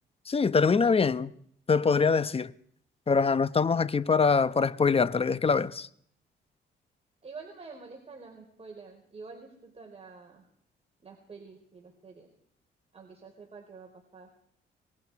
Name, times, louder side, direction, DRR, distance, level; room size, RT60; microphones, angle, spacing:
voice 1, 0.3-1.3 1.7-2.5 3.1-5.9, left 5 dB, 30° left, 0.9 m, -24 dB
voice 2, 7.2-10.4 11.0-12.3 12.9-14.3, right 4 dB, 30° right, 4.5 m, -47 dB
27.0 x 23.0 x 4.8 m
cardioid pair, 90°, 20 cm